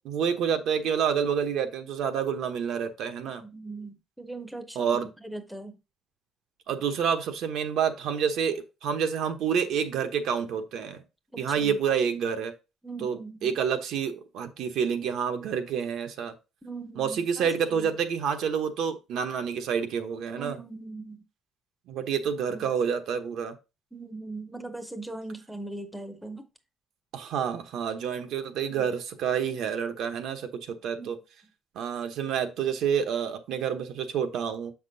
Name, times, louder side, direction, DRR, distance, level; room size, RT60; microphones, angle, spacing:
voice 1, 0.0-3.4 4.8-5.1 6.7-11.0 11.4-12.5 13.0-16.3 17.0-20.6 21.9-23.5 27.1-31.2 31.7-34.7, right 7 dB, 65° right, 1.0 m, -28 dB
voice 2, 3.4-5.8 11.3-11.8 12.8-13.5 16.6-17.9 20.4-21.2 22.5-22.7 23.9-26.5 31.0-31.1, right 2 dB, ahead, 0.7 m, -40 dB
7.5 x 5.9 x 2.7 m
cardioid pair, 165°, 0 cm